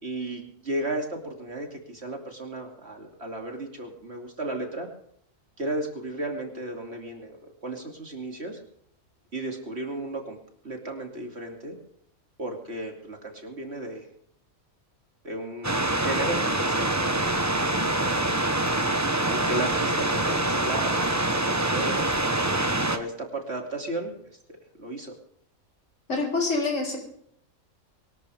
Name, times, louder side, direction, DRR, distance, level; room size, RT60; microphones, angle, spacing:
voice 1, 0.0-4.9 5.6-8.6 9.3-10.4 10.6-11.8 12.4-14.1 15.2-18.5 19.3-21.2 21.5-22.1 22.9-24.1 24.5-25.1, right 2 dB, 50° right, 2 dB, 3.0 m, -34 dB
sound 1, 15.6-23.0, right 2 dB, 15° right, 1.0 m, -25 dB
voice 2, 26.1-27.0, left 3 dB, 60° left, -1 dB, 4.3 m, -26 dB
23.5 x 13.0 x 3.6 m, 0.68 s
omnidirectional pair, 1.4 m